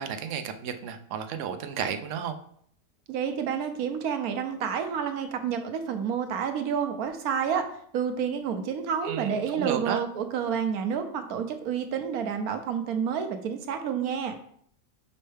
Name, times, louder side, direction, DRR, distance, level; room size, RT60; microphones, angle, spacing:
voice 1, 0.0-2.4 9.0-10.0, right 8 dB, 65° right, 7 dB, 0.9 m, -32 dB
voice 2, 3.1-7.6 7.9-14.3, right 7 dB, 85° right, 7 dB, 1.2 m, -29 dB
5.4 x 5.4 x 3.4 m, 0.64 s
omnidirectional pair, 1.5 m